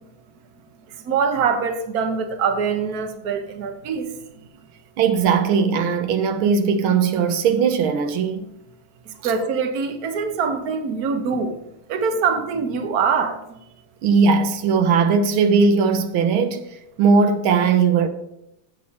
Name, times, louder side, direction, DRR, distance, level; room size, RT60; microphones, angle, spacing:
voice 1, 0.9-4.1 9.2-11.6 11.9-13.4, right 5 dB, 50° right, 1.5 m, -23 dB
voice 2, 5.0-8.5 9.2-9.3 14.0-16.6 17.0-18.1, right 5 dB, 85° right, 1.7 m, -18 dB
16.0 x 6.4 x 4.3 m
omnidirectional pair, 2.2 m